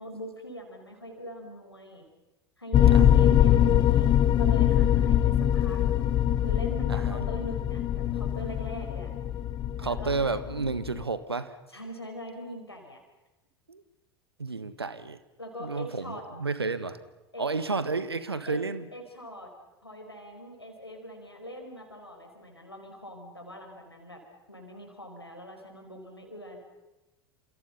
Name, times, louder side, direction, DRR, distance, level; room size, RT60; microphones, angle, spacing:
voice 1, 0.0-2.1 2.6-4.1 4.4-5.8 6.4-9.1 9.8-10.1 11.7-13.0 15.4-16.2 17.3-17.4 18.5-18.6 18.9-19.5 19.8-24.2 24.5-26.6, equal, 85° left, 2 dB, 5.3 m, -42 dB
sound 1, 2.7-11.0, left 10 dB, 35° left, 1.7 m, -23 dB
voice 2, 6.9-7.3 9.8-11.6 13.7-13.8 14.4-15.2 15.6-17.0 17.4-18.9, right 4 dB, 80° right, 13 dB, 1.5 m, -31 dB
29.5 x 27.5 x 5.7 m, 1.1 s
figure-of-eight pair, 80°, 13 cm